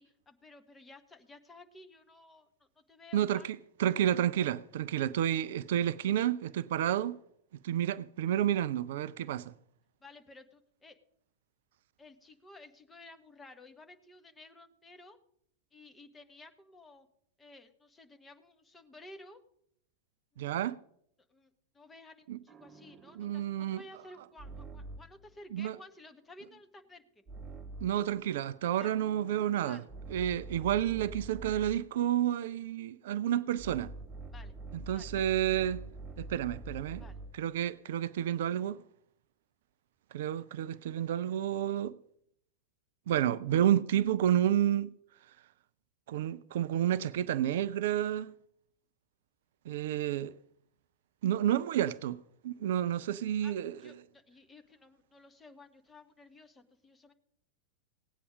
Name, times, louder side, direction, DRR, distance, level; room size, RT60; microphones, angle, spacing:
voice 1, 0.0-3.5 10.0-11.0 12.0-15.2 15.7-17.1 17.4-19.4 20.3-20.4 21.3-27.2 28.7-28.9 29.6-29.9 34.3-34.5 34.9-35.1 37.0-37.2 52.9-53.0 53.4-57.1, left 2 dB, 15° left, 1.2 m, -54 dB
voice 2, 3.1-7.2 7.6-9.5 20.4-20.8 22.3-22.4 23.2-23.8 25.5-25.8 27.8-29.8 30.1-33.9 34.7-35.8 36.2-37.0 37.3-38.8 40.1-42.0 43.1-44.9 46.1-48.3 49.7-50.3 51.2-52.2 52.4-53.7, right 11 dB, 55° right, 0.4 m, -30 dB
sound 1, 22.5-25.2 27.3-28.1 28.9-31.9 33.6-37.5, right 2 dB, 20° right, 1.2 m, -46 dB
17.5 x 8.3 x 5.1 m
figure-of-eight pair, 90°, 0 cm